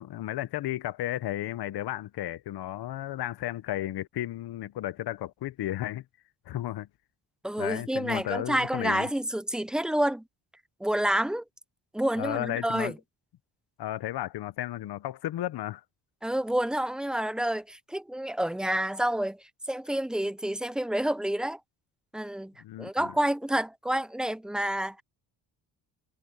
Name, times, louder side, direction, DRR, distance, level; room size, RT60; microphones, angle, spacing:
voice 1, 0.0-6.0 6.5-6.9 7.6-9.1 12.2-12.9 13.8-15.8 22.6-23.1, left 14 dB, 60° left, 0.8 m, -33 dB
voice 2, 7.4-10.2 10.8-11.4 11.9-12.9 16.2-19.4 19.7-21.6 22.1-22.5 22.8-25.0, right 1 dB, ahead, 0.4 m, -28 dB
cardioid pair, 105°, 43 cm